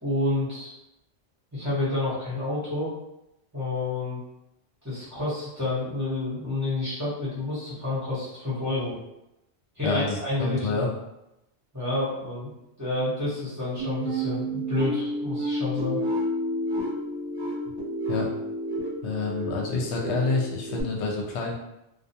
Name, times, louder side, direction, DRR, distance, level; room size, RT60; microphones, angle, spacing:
voice 1, 0.0-0.7 1.5-2.9 3.5-4.2 4.8-8.9 9.8-10.8 11.7-12.5 12.8-16.0, left 2 dB, 15° right, -11 dB, 1.0 m, -29 dB
voice 2, 9.8-10.9 18.1-18.3 19.0-21.5, left 3 dB, 80° left, -1 dB, 0.8 m, -28 dB
sound 1, 13.8-20.8, equal, 50° right, 1.0 m, -30 dB
2.3 x 2.2 x 2.7 m, 0.87 s
omnidirectional pair, 1.2 m